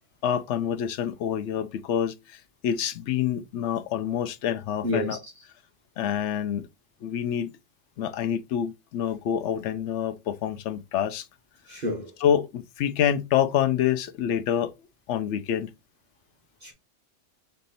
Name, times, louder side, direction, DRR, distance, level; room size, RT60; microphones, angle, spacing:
voice 1, 0.2-2.1 2.6-5.2 6.0-6.6 7.0-7.5 8.0-11.2 12.2-14.7 15.1-15.7, left 9 dB, 70° left, 0.9 m, -27 dB
voice 2, 4.8-5.4 11.7-12.1 16.6-16.7, equal, 45° right, 1.3 m, -30 dB
4.5 x 2.7 x 4.0 m
omnidirectional pair, 1.3 m